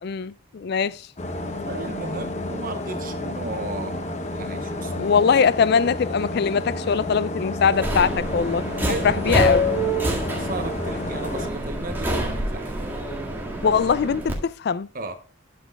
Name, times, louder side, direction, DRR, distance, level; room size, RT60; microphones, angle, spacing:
voice 1, 0.0-1.1 4.9-8.7 9.0-9.6 13.6-14.9, left 6 dB, 50° left, 0.3 m, -21 dB
sound 1, 1.2-11.5, left 1 dB, 35° left, 0.9 m, -31 dB
voice 2, 1.7-5.2 8.9-9.5 10.4-12.9 14.9-15.2, right 2 dB, 40° right, 0.9 m, -34 dB
Subway metro underground, 7.7-14.3, equal, 10° right, 1.8 m, -26 dB
12.0 x 7.5 x 2.3 m
head